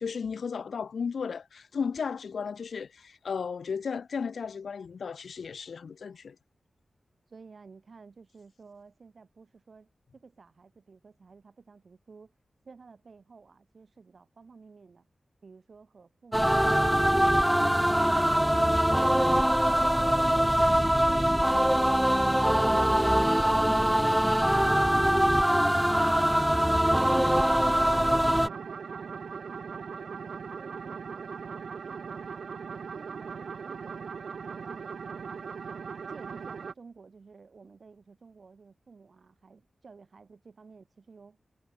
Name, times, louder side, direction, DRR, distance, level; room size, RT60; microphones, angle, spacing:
voice 1, 0.0-6.4, left 6 dB, 90° left, 2.9 m, -34 dB
voice 2, 7.3-12.3 12.6-15.1 15.4-21.8 28.5-32.5 32.9-35.4 36.1-41.4, right 4 dB, 65° right, 7.8 m, -53 dB
sound 1, 16.3-28.5, equal, 5° right, 1.4 m, -23 dB
sound 2, 24.5-26.0 26.4-36.7, right 6 dB, 90° right, 5.8 m, -40 dB
wide cardioid pair, 65°, 0 cm